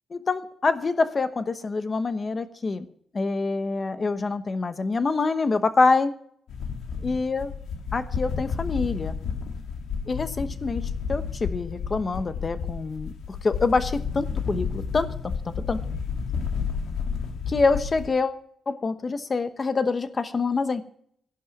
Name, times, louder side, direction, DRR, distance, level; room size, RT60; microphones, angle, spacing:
voice 1, 0.1-2.8 3.1-6.1 7.0-7.5 7.9-9.2 10.1-10.8 11.1-15.1 15.7-15.8 17.5-18.4 18.7-20.8, left 3 dB, 25° left, 11 dB, 0.9 m, -25 dB
sound 1, 6.5-18.1, left 6 dB, 80° left, 1.9 m, -31 dB
14.0 x 11.0 x 6.0 m, 0.64 s
wide cardioid pair, 165°, 0 cm